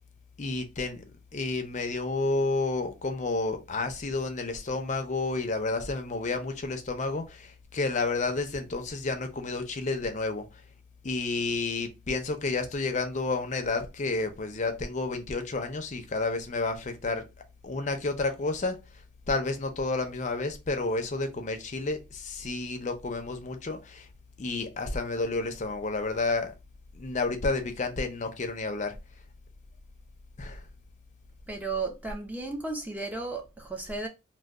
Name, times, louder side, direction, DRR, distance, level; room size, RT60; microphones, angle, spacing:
voice 1, 0.4-1.0 1.3-10.6 11.0-17.2 17.6-24.1 24.4-26.5 26.9-29.0 30.4-30.7, left 3 dB, 40° left, 0.5 m, -30 dB
voice 2, 31.5-34.1, right 3 dB, 10° right, 0.5 m, -34 dB
2.2 x 2.2 x 3.5 m
head